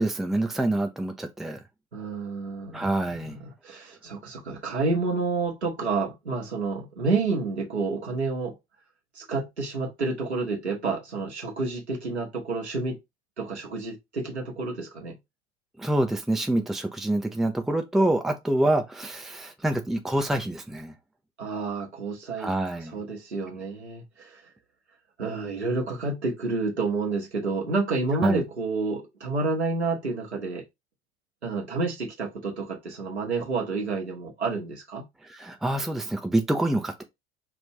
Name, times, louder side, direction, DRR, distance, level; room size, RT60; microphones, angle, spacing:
voice 1, 0.0-1.6 2.7-3.4 15.8-20.9 22.4-23.0 28.2-28.4 35.2-37.0, right 1 dB, ahead, 0.6 m, -26 dB
voice 2, 1.9-3.1 3.3-8.6 9.1-13.0 13.4-15.2 21.4-22.5 22.9-24.4 25.2-30.6 31.4-35.1, right 3 dB, 85° right, 1.2 m, -29 dB
5.3 x 2.6 x 3.1 m
figure-of-eight pair, 70°, 33 cm